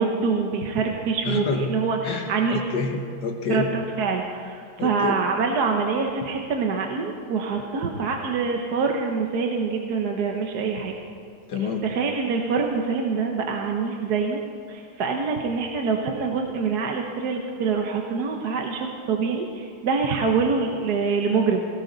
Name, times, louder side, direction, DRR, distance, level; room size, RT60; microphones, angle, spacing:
voice 1, 0.0-2.7 3.5-10.9 11.8-14.4 14.7-21.6, right 5 dB, 55° right, 2 dB, 1.3 m, -25 dB
voice 2, 1.2-1.7 2.0-3.7 4.8-5.2 11.5-11.9, left 5 dB, 60° left, 4 dB, 1.6 m, -28 dB
18.0 x 17.0 x 4.0 m, 2.5 s
omnidirectional pair, 2.4 m